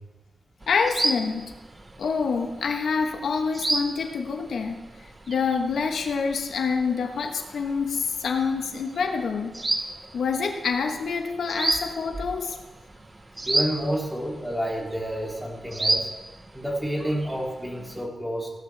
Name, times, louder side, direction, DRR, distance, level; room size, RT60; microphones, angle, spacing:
sound 1, 0.6-18.1, right 2 dB, 25° right, 1.0 m, -33 dB
voice 1, 0.7-1.5 2.0-4.8 5.3-9.6 10.1-12.6, left 5 dB, 80° left, 4 dB, 1.2 m, -26 dB
voice 2, 13.4-16.1 16.5-18.5, equal, 5° right, -3 dB, 2.8 m, -29 dB
17.0 x 12.0 x 3.4 m, 1.2 s
wide cardioid pair, 110°, 0 cm